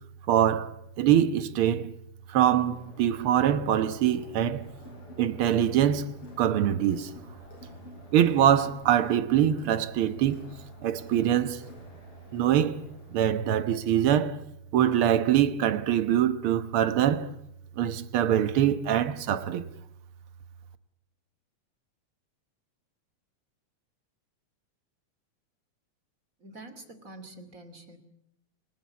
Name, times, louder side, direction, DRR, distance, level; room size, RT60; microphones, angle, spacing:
voice 1, 0.3-1.9 2.3-4.7 5.2-7.1 8.1-10.5 10.8-11.7 12.3-12.8 13.1-14.4 14.7-17.3 17.8-19.6, right 10 dB, 60° right, 1.7 m, -24 dB
Crowd, 2.4-14.0, left 2 dB, 50° left, 8.2 m, -49 dB
voice 2, 26.4-28.0, right 2 dB, 30° right, 2.7 m, -46 dB
27.5 x 20.0 x 8.5 m
omnidirectional pair, 3.3 m